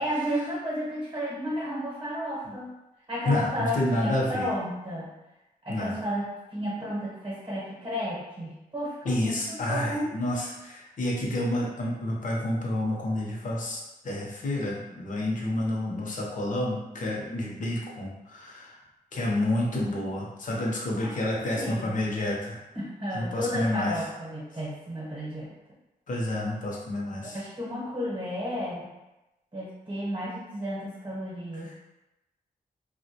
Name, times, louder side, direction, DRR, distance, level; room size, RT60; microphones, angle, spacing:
voice 1, 0.0-2.7 3.1-5.1 5.6-10.1 17.3-17.6 21.0-21.9 22.7-25.5 27.2-28.9 29.5-31.7, equal, 35° right, -7 dB, 0.8 m, -33 dB
voice 2, 3.3-4.5 5.7-6.0 9.0-18.8 19.1-22.6 23.1-24.0 26.1-27.4, left 1 dB, 55° left, -2 dB, 0.6 m, -29 dB
2.3 x 2.1 x 2.7 m, 0.98 s
wide cardioid pair, 115°, 16 cm